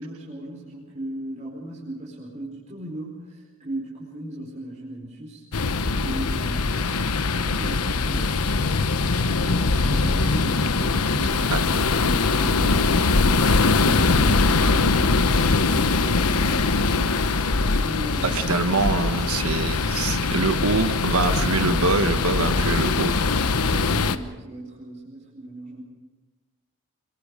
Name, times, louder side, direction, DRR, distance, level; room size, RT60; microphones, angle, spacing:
voice 1, 0.0-5.4 6.0-11.9 17.8-18.6 23.2-25.8, right 1 dB, 30° right, -4 dB, 4.9 m, -37 dB
sound 1, 5.5-24.2, left 3 dB, 85° left, 1.1 m, -22 dB
voice 2, 18.2-23.1, right 3 dB, 80° right, 8 dB, 1.3 m, -24 dB
27.5 x 22.5 x 5.0 m, 1.3 s
head